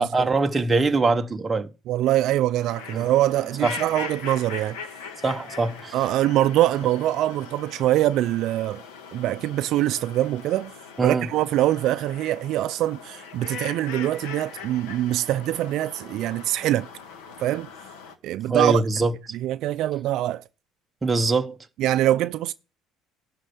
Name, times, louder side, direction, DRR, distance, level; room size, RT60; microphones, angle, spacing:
voice 1, 0.0-1.7 2.9-3.1 3.6-3.8 5.2-6.0 11.0-11.3 18.5-19.1 21.0-21.6, right 3 dB, 15° right, 0.8 m, -22 dB
voice 2, 1.9-4.8 5.9-8.8 9.1-10.7 11.0-16.9 17.4-17.7 18.2-18.8 19.3-20.4 21.8-22.5, right 14 dB, 60° right, 0.4 m, -24 dB
sound 1, 2.6-18.2, left 6 dB, 90° left, 1.6 m, -40 dB
12.0 x 4.3 x 6.3 m
cardioid pair, 140°, 0 cm